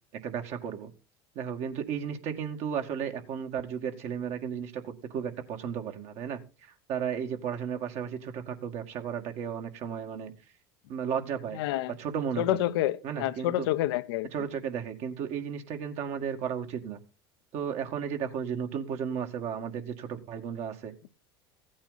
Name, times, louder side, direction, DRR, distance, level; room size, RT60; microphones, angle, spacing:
voice 1, 0.2-0.9 1.4-10.3 10.9-11.6 12.0-12.6 13.0-13.7 14.3-17.0 17.5-20.9, right 8 dB, 55° right, 2.0 m, -34 dB
voice 2, 11.5-11.9 12.4-14.3, left 14 dB, 70° left, 0.9 m, -28 dB
15.0 x 8.7 x 4.1 m
hypercardioid pair, 85°, 13 cm